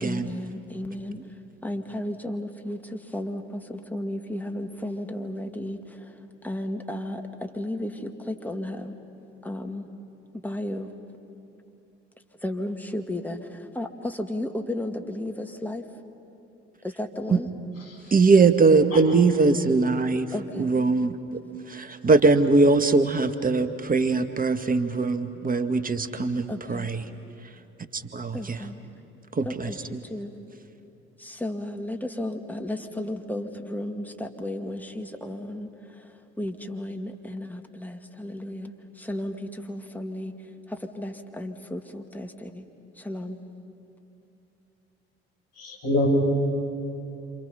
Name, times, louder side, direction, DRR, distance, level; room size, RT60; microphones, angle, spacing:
voice 1, 0.0-1.2 1.6-2.8 3.1-3.4 3.9-5.8 6.4-7.2 7.6-7.9 8.4-8.8 9.5-9.8 10.4-10.9 12.4-13.4 13.8-13.9 14.2-15.8 17.0-17.5 20.3-20.7 26.5-26.9 28.3-28.7 29.5-29.7 30.1-30.3 31.4-34.1 34.4-35.7 36.4-38.7 39.1-39.3 39.7-40.3 41.0-42.3 43.1-43.4, left 1 dB, 5° left, 4 dB, 2.1 m, -33 dB
voice 2, 18.1-20.3 20.6-21.2 21.7-27.0 27.9-28.6 29.3-30.0, right 3 dB, 25° right, 10 dB, 1.6 m, -21 dB
voice 3, 45.6-46.1, left 2 dB, 50° left, -1 dB, 6.0 m, -27 dB
27.5 x 27.0 x 5.7 m, 2.9 s
figure-of-eight pair, 50°, 32 cm